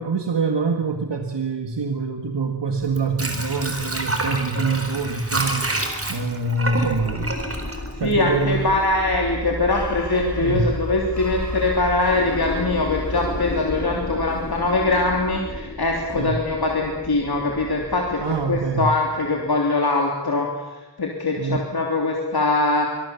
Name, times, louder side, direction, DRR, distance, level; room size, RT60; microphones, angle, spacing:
voice 1, 0.0-5.7 6.1-7.4 8.0-8.7 10.4-10.8 16.2-16.4 18.2-18.9 21.4-21.6, right 4 dB, 80° right, 5 dB, 1.8 m, -25 dB
Water / Sink (filling or washing), 2.8-8.7 9.0-9.1, right 2 dB, 35° right, 4.2 m, -28 dB
sound 1, 6.6-19.4, left 2 dB, 45° left, 4.0 m, -32 dB
voice 2, 8.0-22.9, left 2 dB, 60° left, 0 dB, 3.3 m, -22 dB
26.0 x 21.5 x 7.1 m, 1.2 s
wide cardioid pair, 65°, 42 cm